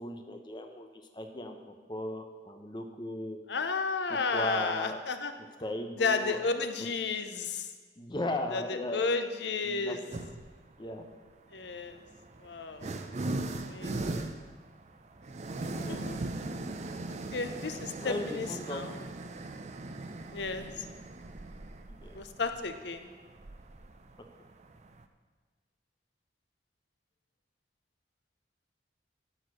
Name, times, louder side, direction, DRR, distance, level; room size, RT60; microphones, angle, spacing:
voice 1, 0.0-3.4 4.3-5.0 5.6-6.5 8.0-9.2 9.6-10.2 10.8-11.1 13.9-14.0 15.7-15.9 18.0-18.8 21.9-22.2, left 1 dB, 25° left, 5 dB, 0.8 m, -37 dB
voice 2, 3.5-5.3 6.0-7.7 8.5-10.0 11.5-12.1 12.4-12.9 13.5-14.3 15.6-16.2 17.3-18.9 20.3-20.9 22.1-23.1, left 4 dB, 75° left, 8 dB, 0.7 m, -33 dB
sound 1, 10.1-10.6 11.6-25.0, right 2 dB, 40° right, 0.5 m, -39 dB
13.0 x 4.4 x 6.3 m, 1.4 s
head